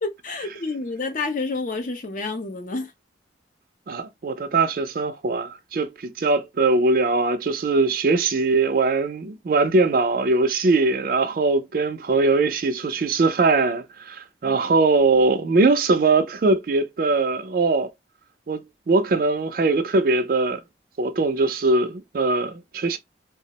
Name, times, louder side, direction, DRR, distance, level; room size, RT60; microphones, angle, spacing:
voice 1, 0.0-2.9 14.4-14.5, left 3 dB, 45° left, 0.5 m, -29 dB
voice 2, 3.9-17.9 18.5-20.6 21.0-23.0, right 3 dB, 50° right, 0.4 m, -21 dB
2.3 x 2.0 x 2.7 m
head